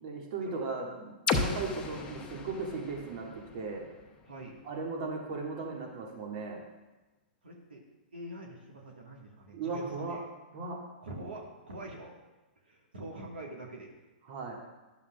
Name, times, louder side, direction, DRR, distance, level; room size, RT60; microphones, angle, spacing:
voice 1, 0.0-3.3 3.5-3.9 4.7-6.6 9.5-10.2 10.5-10.8 14.3-14.5, right 4 dB, 50° right, 0 dB, 1.8 m, -37 dB
sound 1, 1.3-5.1, left 4 dB, 20° left, 0.8 m, -36 dB
voice 2, 4.3-4.6 7.4-7.8 8.1-10.2 11.0-12.1 12.6-13.9, right 1 dB, 80° right, -1 dB, 1.6 m, -45 dB
12.0 x 6.9 x 2.4 m, 1.1 s
hypercardioid pair, 115°, 5 cm